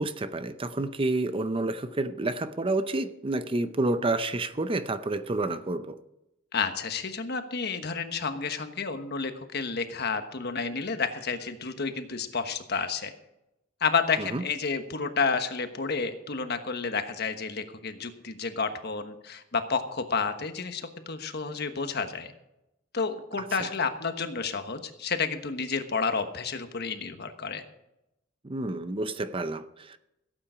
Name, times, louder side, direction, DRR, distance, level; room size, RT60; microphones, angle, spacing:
voice 1, 0.0-6.0 14.2-14.4 23.4-23.7 28.4-30.0, right 2 dB, 30° right, 0.6 m, -29 dB
voice 2, 6.5-13.1 13.8-22.3 22.9-27.6, left 5 dB, 55° left, 1.3 m, -30 dB
16.5 x 8.8 x 5.1 m
head